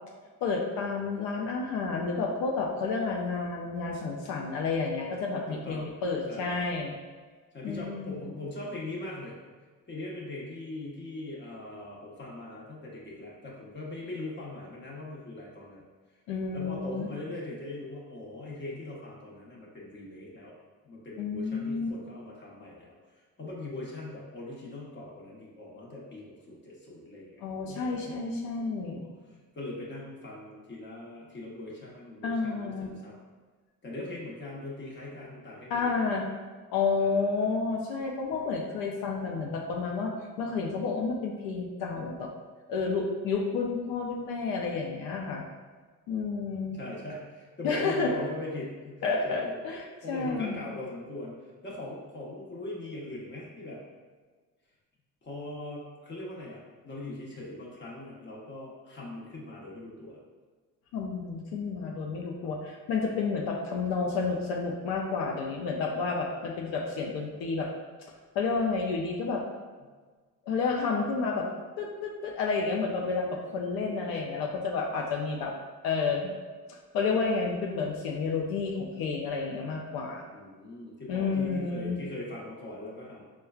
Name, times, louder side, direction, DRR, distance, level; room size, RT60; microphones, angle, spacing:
voice 1, 0.4-6.9 7.6-8.2 16.3-17.1 21.2-21.9 27.4-29.0 32.2-32.9 35.7-36.3 36.7-40.1 40.4-42.3 42.7-45.4 46.1-46.8 47.6-48.1 49.0-50.6 60.9-67.7 68.3-69.4 70.5-71.5 71.8-75.5 75.8-76.3 76.7-80.3 81.1-82.0, left 4 dB, 90° left, 0 dB, 0.5 m, -30 dB
voice 2, 5.5-5.9 6.3-6.6 7.5-9.3 9.9-15.8 16.5-20.6 20.8-23.0 23.4-29.1 29.5-33.1 33.8-36.1 37.0-37.4 46.7-49.5 50.0-51.4 51.6-53.8 55.2-60.2 80.3-83.2, left 2 dB, 30° left, -4 dB, 0.9 m, -41 dB
4.4 x 2.2 x 2.3 m, 1.4 s
cardioid pair, 90°, 35 cm